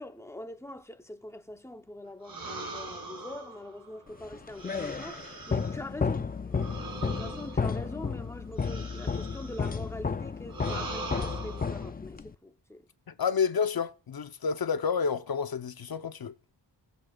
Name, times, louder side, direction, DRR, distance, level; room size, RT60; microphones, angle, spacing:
voice 1, 0.0-12.8, left 1 dB, 5° left, 0.8 m, -43 dB
sound 1, 2.2-5.9 6.5-9.9 10.5-11.9, right 3 dB, 50° right, 2.5 m, -42 dB
sound 2, 4.2-12.3, left 5 dB, 20° left, 0.4 m, -33 dB
voice 2, 13.1-16.3, left 6 dB, 55° left, 0.8 m, -29 dB
20.0 x 7.2 x 2.4 m
wide cardioid pair, 100°, 44 cm